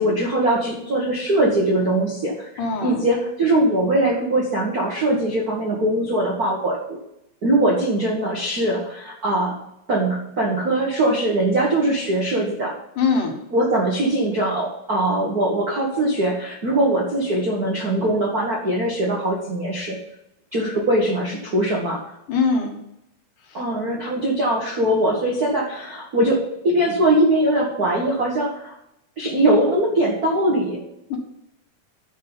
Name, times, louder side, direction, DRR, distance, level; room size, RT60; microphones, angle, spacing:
voice 1, 0.0-2.3 2.8-7.0 7.4-9.5 9.9-12.7 13.5-20.0 20.5-22.0 23.5-28.7 29.2-30.8, right 1 dB, 55° right, -3 dB, 1.0 m, -21 dB
voice 2, 2.6-3.0 13.0-13.3 22.3-22.7 23.4-23.6 31.1-31.2, left 5 dB, 65° left, 1 dB, 2.8 m, -22 dB
11.0 x 5.2 x 5.6 m, 0.82 s
omnidirectional pair, 4.4 m